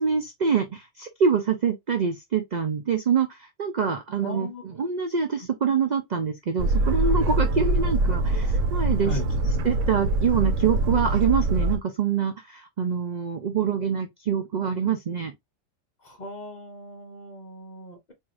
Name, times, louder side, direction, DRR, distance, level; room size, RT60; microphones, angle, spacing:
voice 1, 0.0-9.2 9.6-15.3, right 6 dB, 55° right, 0.4 m, -25 dB
voice 2, 4.2-4.6 9.0-9.3 16.0-18.1, left 1 dB, 40° left, 0.9 m, -37 dB
Boat Water vehicle, 6.6-11.8, right 2 dB, 75° right, 1.0 m, -24 dB
4.7 x 2.7 x 2.5 m
omnidirectional pair, 1.4 m